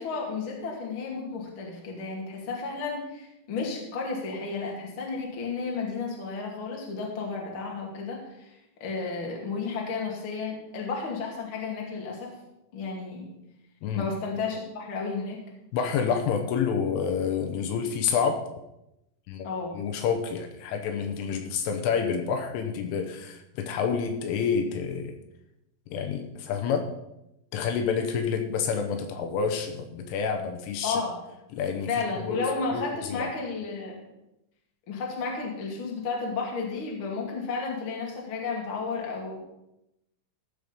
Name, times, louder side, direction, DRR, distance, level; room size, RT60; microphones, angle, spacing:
voice 1, 0.0-8.5 8.8-12.3 12.7-13.3 13.9-15.4 19.4-19.7 30.8-31.1 31.9-34.0 34.9-39.4, left 4 dB, 40° left, -1 dB, 1.9 m, -32 dB
voice 2, 15.7-18.4 19.3-19.5 19.7-25.2 25.9-26.9 27.5-31.0 31.5-31.9 32.3-32.4 32.7-33.3, left 6 dB, 80° left, 5 dB, 3.3 m, -28 dB
15.0 x 6.4 x 5.2 m, 0.88 s
omnidirectional pair, 5.9 m